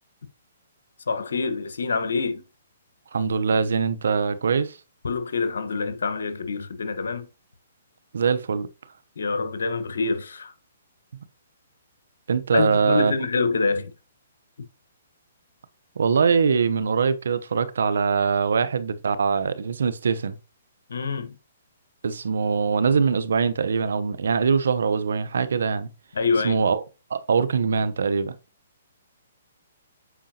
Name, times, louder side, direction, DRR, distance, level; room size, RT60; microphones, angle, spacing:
voice 1, 1.1-2.4 5.0-7.3 9.2-10.5 12.5-13.9 20.9-21.3 26.1-26.6, left 4 dB, 80° left, 1.2 m, -26 dB
voice 2, 3.1-4.8 8.1-8.7 12.3-13.1 16.0-20.3 22.0-25.9 26.4-26.8 27.1-28.3, right 5 dB, 80° right, 0.8 m, -22 dB
8.2 x 4.9 x 2.8 m
hypercardioid pair, 150°, 0 cm